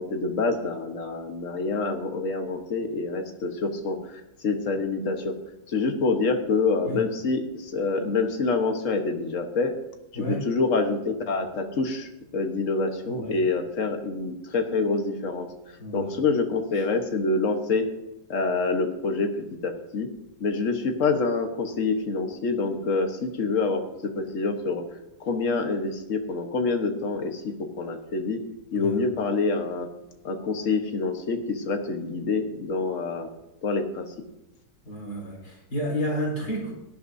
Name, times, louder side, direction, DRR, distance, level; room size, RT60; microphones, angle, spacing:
voice 1, 0.0-4.0 4.4-5.3 5.7-9.7 10.1-17.8 18.3-20.1 20.4-23.8 24.1-24.8 25.2-28.4 28.7-29.9 30.2-33.3 33.6-34.1, left 3 dB, 55° left, 4 dB, 1.6 m, -26 dB
voice 2, 13.1-13.4 15.8-16.2 16.7-16.8 28.7-29.0 34.9-36.7, equal, 75° left, -3 dB, 4.1 m, -31 dB
18.0 x 11.0 x 2.7 m, 0.95 s
omnidirectional pair, 1.7 m